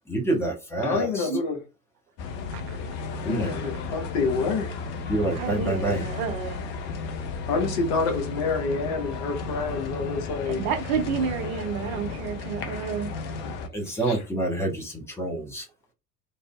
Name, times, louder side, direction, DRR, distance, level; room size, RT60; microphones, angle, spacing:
voice 1, 0.1-1.3 3.2-3.5 5.1-6.1 13.7-15.7, right 2 dB, 5° left, 0.9 m, -27 dB
voice 2, 0.8-1.6 3.1-4.7 7.5-10.6 14.1-14.2, left 4 dB, 50° left, 1.0 m, -27 dB
sound 1, 2.2-13.7, left 4 dB, 25° left, 0.3 m, -34 dB
voice 3, 5.3-6.6 10.5-13.1, right 7 dB, 55° right, 0.7 m, -30 dB
3.3 x 2.5 x 2.3 m
figure-of-eight pair, 70°, 50 cm